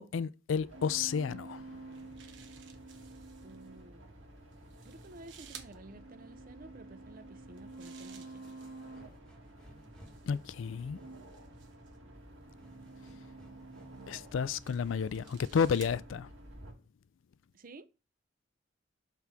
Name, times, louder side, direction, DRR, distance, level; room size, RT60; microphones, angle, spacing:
voice 1, 0.0-1.9 10.3-11.0 14.1-16.3, left 6 dB, 80° left, 0.4 m, -32 dB
sound 1, 0.5-16.7, right 2 dB, 90° right, 2.1 m, -50 dB
sound 2, 1.7-3.7 4.5-5.7 7.4-9.0 9.8-12.0 12.8-13.2 14.0-16.0, right 8 dB, 70° right, 1.0 m, -56 dB
voice 2, 3.4-4.1 4.8-8.6 17.5-17.9, right 2 dB, 45° right, 0.6 m, -52 dB
sound 3, 7.0-16.0, equal, 5° left, 1.3 m, -61 dB
5.9 x 4.6 x 5.6 m
head